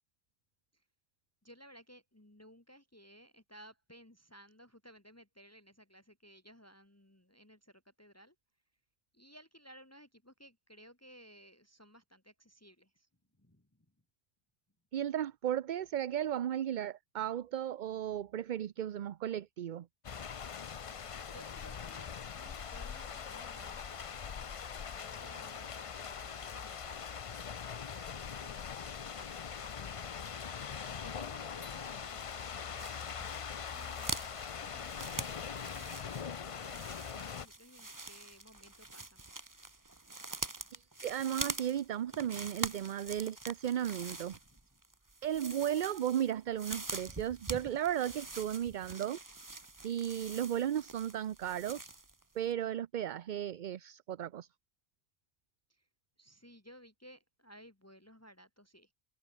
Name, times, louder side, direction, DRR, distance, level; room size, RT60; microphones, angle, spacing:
voice 1, 1.4-8.4 9.1-13.1 13.4-13.9 20.4-24.1 25.0-39.2 40.6-40.7 44.4-44.8 55.7-55.9 56.2-58.9, equal, 15° left, 2.0 m, -58 dB
voice 2, 14.9-19.9 40.7-44.4 45.2-49.2 49.8-51.9 52.4-54.5, right 10 dB, 55° right, 0.6 m, -35 dB
sound 1, 20.0-37.5, left 7 dB, 40° left, 0.6 m, -42 dB
sound 2, 32.8-52.2 52.5-52.6, right 2 dB, 20° right, 1.1 m, -45 dB
omnidirectional pair, 1.1 m